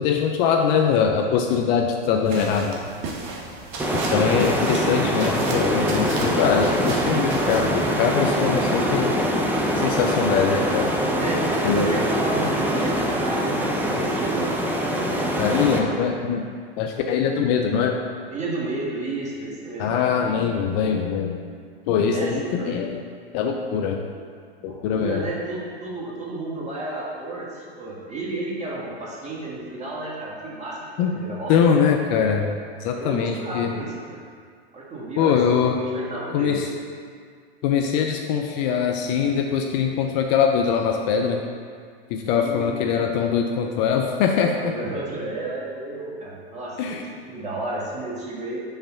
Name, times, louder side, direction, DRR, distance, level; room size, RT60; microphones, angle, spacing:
voice 1, 0.0-2.8 4.1-9.2 9.8-10.9 11.6-11.9 15.4-16.5 16.8-18.0 19.8-21.4 21.9-23.0 23.3-24.0 24.6-25.3 31.0-31.1 31.5-32.5 32.8-33.7 35.2-35.8 36.3-36.7 37.6-41.4 42.1-44.7 46.8-47.1, left 7 dB, 45° left, 3 dB, 0.5 m, -22 dB
sound 1, 2.2-7.7, right 3 dB, 40° right, 1.1 m, -35 dB
sound 2, 3.8-15.8, equal, 5° right, 0.6 m, -23 dB
voice 2, 4.4-4.8 7.4-7.6 11.1-14.4 15.7-16.2 18.3-19.9 22.0-22.7 24.6-31.7 33.0-34.2 34.7-36.6 42.3-42.9 44.6-47.0 47.2-48.6, right 2 dB, 20° right, -5 dB, 1.6 m, -32 dB
5.6 x 3.3 x 5.5 m, 2.1 s
hypercardioid pair, 105°, 32 cm